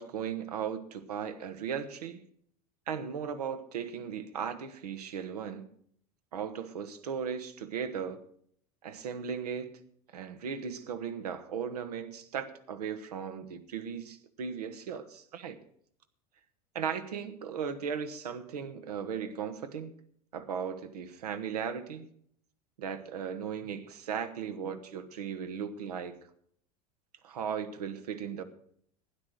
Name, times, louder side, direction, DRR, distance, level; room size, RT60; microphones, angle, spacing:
voice 1, 0.0-2.2 2.9-5.7 6.3-8.2 8.8-9.8 10.1-15.6 16.7-19.9 20.3-22.1 22.8-26.2 27.2-28.4, right 7 dB, 80° right, 9 dB, 1.4 m, -37 dB
12.0 x 10.5 x 6.5 m, 0.63 s
hypercardioid pair, 85°, 20 cm